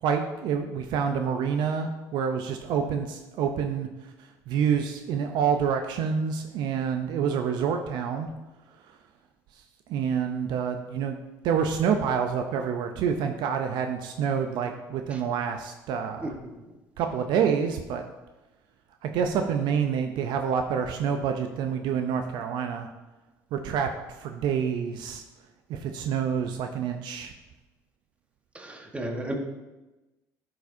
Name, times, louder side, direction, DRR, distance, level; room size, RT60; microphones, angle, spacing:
voice 1, 0.0-3.9 4.5-8.3 9.9-11.2 11.4-16.3 17.0-18.0 19.0-22.9 23.5-25.2 25.7-27.3, right 7 dB, 65° right, 5 dB, 0.6 m, -27 dB
voice 2, 28.5-29.3, right 1 dB, 15° right, 2 dB, 1.3 m, -34 dB
11.0 x 4.8 x 2.7 m, 1.1 s
supercardioid pair, 80°, 8 cm